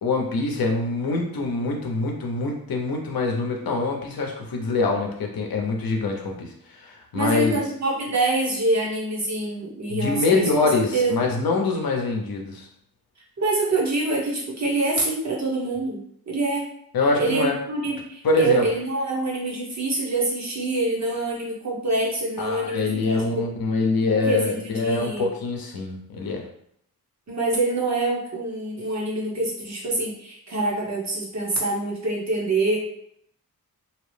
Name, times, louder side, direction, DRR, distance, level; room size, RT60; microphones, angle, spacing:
voice 1, 0.0-7.6 9.9-12.7 16.9-17.5 18.2-18.6 22.4-26.4, left 3 dB, 70° left, 1 dB, 0.7 m, -24 dB
voice 2, 7.1-10.4 10.9-11.1 13.4-16.0 16.3-16.7 17.2-23.5 24.1-25.3 27.3-32.8, right 2 dB, 50° right, -3 dB, 0.9 m, -25 dB
2.8 x 2.0 x 3.1 m, 0.71 s
wide cardioid pair, 140°, 36 cm